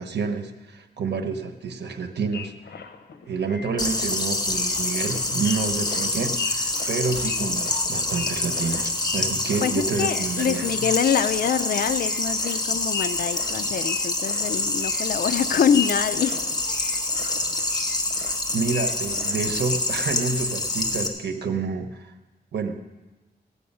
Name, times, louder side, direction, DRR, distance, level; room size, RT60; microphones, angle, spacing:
voice 1, 0.0-2.5 3.2-10.9 18.5-22.1 22.5-22.8, right 4 dB, 90° right, 6 dB, 1.0 m, -28 dB
sound 1, 2.3-19.8, left 6 dB, 90° left, 0.7 m, -38 dB
sound 2, 3.8-21.1, left 2 dB, 25° left, 1.3 m, -26 dB
voice 2, 9.6-16.4, left 8 dB, 60° left, 10 dB, 0.4 m, -25 dB
17.0 x 8.5 x 5.5 m, 1.2 s
wide cardioid pair, 90°, 17 cm